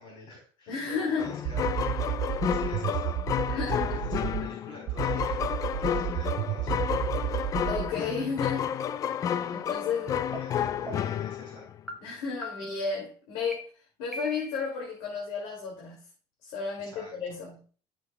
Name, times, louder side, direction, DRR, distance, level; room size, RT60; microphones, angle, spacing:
voice 1, 0.0-6.9 7.2-7.5 9.3-9.6 10.1-11.7 16.8-17.1, left 2 dB, 55° left, -1 dB, 4.2 m, -47 dB
voice 2, 0.7-1.3 3.5-3.8 7.6-8.7 9.1-10.2 12.0-13.6 14.0-16.0 16.4-17.6, left 5 dB, 85° left, -2 dB, 2.6 m, -33 dB
sound 1, 1.2-11.8, left 9 dB, 35° left, 0.4 m, -31 dB
sound 2, 1.4-4.5 4.9-7.9, right 15 dB, 60° right, 0.5 m, -31 dB
sound 3, 10.3-10.4 10.9-11.2 11.9-12.0 12.4-12.9 13.5-13.6 14.1-14.7, equal, ahead, 1.4 m, -40 dB
13.0 x 6.7 x 2.3 m, 0.41 s
cardioid pair, 140°, 10 cm